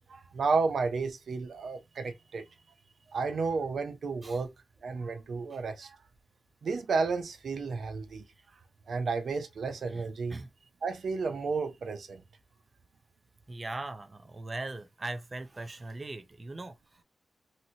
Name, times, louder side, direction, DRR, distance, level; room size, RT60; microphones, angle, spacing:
voice 1, 0.1-2.5 3.1-4.5 4.8-6.0 6.6-8.3 8.9-10.4 10.8-12.2, right 4 dB, 75° right, 0.7 m, -32 dB
voice 2, 9.9-10.5 13.5-17.0, right 2 dB, 35° right, 0.6 m, -40 dB
2.9 x 2.6 x 2.8 m
cardioid pair, 55°, 0 cm